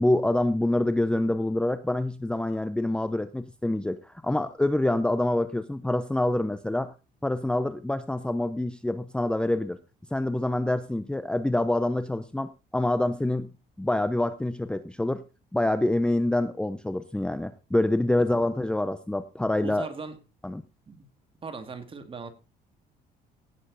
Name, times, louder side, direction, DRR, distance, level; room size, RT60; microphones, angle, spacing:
voice 1, 0.0-6.9 7.2-9.8 10.1-13.5 13.8-15.2 15.5-19.9 20.4-20.6, left 1 dB, 5° left, 12 dB, 0.7 m, -26 dB
voice 2, 19.6-20.2 20.9-21.1 21.4-22.3, right 4 dB, 30° right, 9 dB, 2.3 m, -39 dB
17.0 x 7.6 x 4.0 m, 0.30 s
cardioid pair, 110°, 17 cm